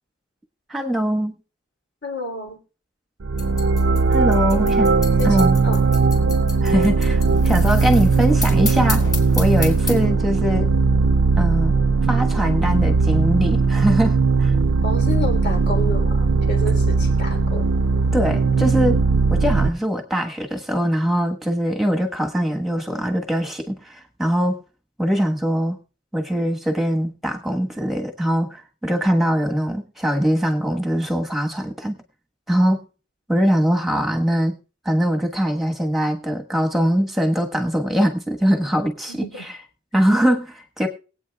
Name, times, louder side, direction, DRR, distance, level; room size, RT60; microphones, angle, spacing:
voice 1, 0.7-1.4 4.1-4.9 5.2-5.6 6.6-9.1 9.3-10.7 11.4-11.8 12.1-14.5 18.1-19.0 19.3-24.6 25.0-25.8 26.1-32.0 32.5-32.8 33.3-34.6 34.8-39.5 39.9-40.9, equal, ahead, 3 dB, 1.3 m, -22 dB
voice 2, 2.0-2.6 4.5-4.7 5.2-5.8 14.8-17.7 39.1-39.4, left 1 dB, 55° left, 1 dB, 3.3 m, -30 dB
sound 1, 3.2-19.7, right 4 dB, 60° right, 0.5 m, -18 dB
sound 2, 3.4-10.1, left 4 dB, 15° left, 3.3 m, -32 dB
22.0 x 8.6 x 2.3 m, 0.35 s
head